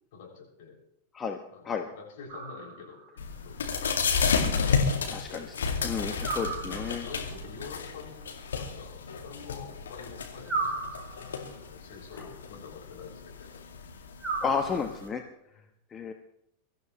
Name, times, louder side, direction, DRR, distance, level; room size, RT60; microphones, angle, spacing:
voice 1, 0.1-0.8 1.5-3.9 5.1-5.5 6.6-10.8 11.1-13.5 14.6-14.8 15.4-15.6, left 5 dB, 50° left, -2 dB, 6.7 m, -47 dB
sound 1, 2.3-3.1 6.2-7.2 10.5-11.5 14.2-15.2, right 4 dB, 15° right, 2.9 m, -35 dB
sound 2, 3.2-15.1, left 5 dB, 65° left, 2.2 m, -32 dB
voice 2, 5.1-5.5 5.8-7.0 12.1-12.3 14.4-15.2 15.9-16.1, left 6 dB, 20° left, 5 dB, 1.1 m, -32 dB
23.5 x 13.5 x 3.2 m, 0.75 s
figure-of-eight pair, 90°, 0 cm